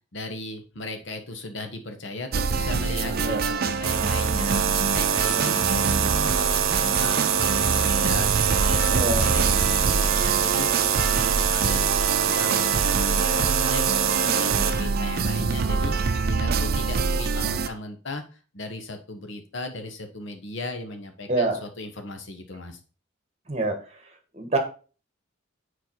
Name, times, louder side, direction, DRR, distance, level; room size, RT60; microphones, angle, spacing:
voice 1, 0.1-11.9 12.2-16.0 16.4-22.8, left 2 dB, 60° left, 7 dB, 1.1 m, -37 dB
sound 1, 2.3-17.7, right 4 dB, 45° right, 0.5 m, -25 dB
sound 2, 3.8-14.7, right 8 dB, 85° right, 0.8 m, -24 dB
voice 2, 5.2-5.6 8.9-9.3 21.3-21.6 23.5-23.8 24.3-24.6, right 2 dB, 30° right, 5 dB, 1.2 m, -26 dB
7.0 x 4.5 x 4.5 m, 0.37 s
head